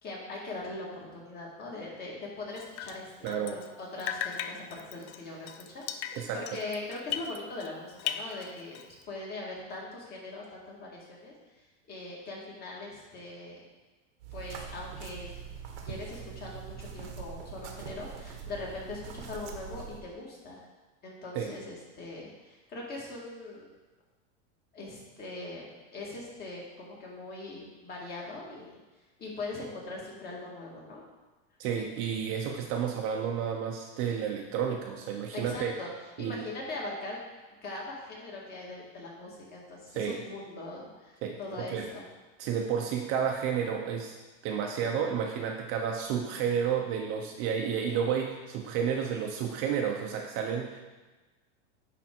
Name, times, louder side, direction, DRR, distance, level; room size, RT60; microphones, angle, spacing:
voice 1, 0.0-8.8 9.1-11.3 11.9-13.6 14.3-15.4 15.8-20.6 21.0-23.7 24.7-28.8 29.2-31.0 35.3-35.9 36.2-37.2 37.6-42.0, left 2 dB, 25° left, -3 dB, 1.9 m, -41 dB
Drip, 2.6-3.7 4.0-7.7 8.0-9.0, left 10 dB, 65° left, 0.6 m, -38 dB
voice 2, 3.2-3.6 6.1-6.6 21.3-21.5 31.6-35.8 36.2-36.4 39.9-40.2 41.2-41.9 42.4-44.2 44.4-50.8, right 7 dB, 40° right, 2 dB, 0.7 m, -31 dB
sound 1, 14.2-20.0, right 7 dB, 85° right, 1.2 m, -43 dB
10.0 x 3.6 x 4.5 m, 1.2 s
supercardioid pair, 150°, 34 cm